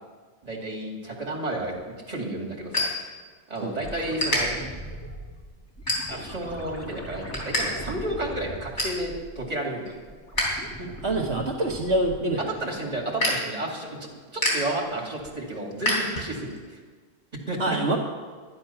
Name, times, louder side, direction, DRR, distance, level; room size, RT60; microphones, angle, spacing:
voice 1, 0.4-1.7 2.1-2.9 3.5-4.5 6.1-9.9 12.5-16.8 17.5-17.8, right 1 dB, 35° right, -2 dB, 2.5 m, -32 dB
sound 1, 1.6-3.7 4.0-4.4 5.0-5.2 5.7-6.4 6.8-7.6 7.9-8.0 8.4-9.0 9.5-10.5 10.8-16.6, left 1 dB, 80° left, 3.9 m, -30 dB
sound 2, 3.7-9.5 9.9-12.4 14.9-15.0, equal, 15° left, 1.5 m, -40 dB
voice 2, 10.8-12.4 17.6-18.0, right 1 dB, 75° right, -1 dB, 1.5 m, -26 dB
12.0 x 10.5 x 5.8 m, 1.5 s
omnidirectional pair, 1.2 m